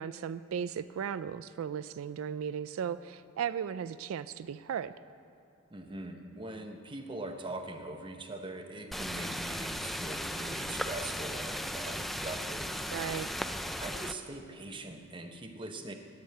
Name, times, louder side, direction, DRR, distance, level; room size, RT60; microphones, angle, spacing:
voice 1, 0.0-4.9 12.9-13.3, right 8 dB, 85° right, 14 dB, 0.3 m, -36 dB
voice 2, 5.7-12.8 13.8-15.9, right 2 dB, 25° right, 5 dB, 0.8 m, -42 dB
sound 1, 8.9-14.1, equal, ahead, 0.3 m, -36 dB
11.0 x 7.3 x 8.7 m, 2.9 s
head